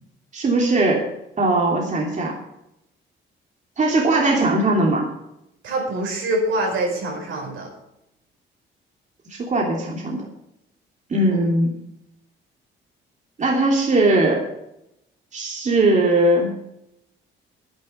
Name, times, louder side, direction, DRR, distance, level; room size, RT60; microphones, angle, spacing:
voice 1, 0.3-1.1 1.4-2.3 3.8-5.1 9.3-10.2 11.1-11.7 13.4-14.4 15.3-16.5, right 2 dB, 40° right, -1 dB, 3.0 m, -19 dB
voice 2, 5.6-7.7 11.3-11.4, right 1 dB, 80° right, 0 dB, 5.5 m, -25 dB
10.5 x 10.5 x 6.8 m, 0.83 s
cardioid pair, 90°, 20 cm